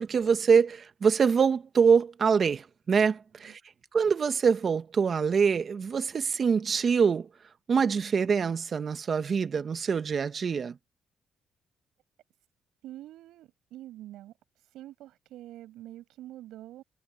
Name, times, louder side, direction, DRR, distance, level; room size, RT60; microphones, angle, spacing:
voice 1, 0.0-3.6 3.9-7.3 7.7-10.8, right 6 dB, 45° right, 1.5 m, -25 dB
voice 2, 12.8-16.8, right 14 dB, 85° right, 7.8 m, -46 dB
cardioid pair, 90°, 0 cm